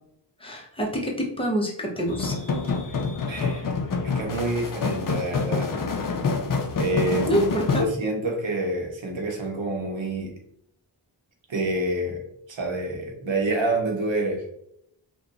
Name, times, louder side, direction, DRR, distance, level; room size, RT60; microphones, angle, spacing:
voice 1, 0.4-2.4 7.3-7.8, equal, 10° left, -1 dB, 0.8 m, -26 dB
sound 1, 2.1-7.8, left 4 dB, 50° left, 0.5 m, -27 dB
voice 2, 3.2-3.8 4.0-5.8 6.8-10.3 11.5-12.2 12.5-14.5, right 2 dB, 80° right, 1 dB, 0.9 m, -28 dB
2.9 x 2.3 x 2.5 m, 0.74 s
wide cardioid pair, 60°, 45 cm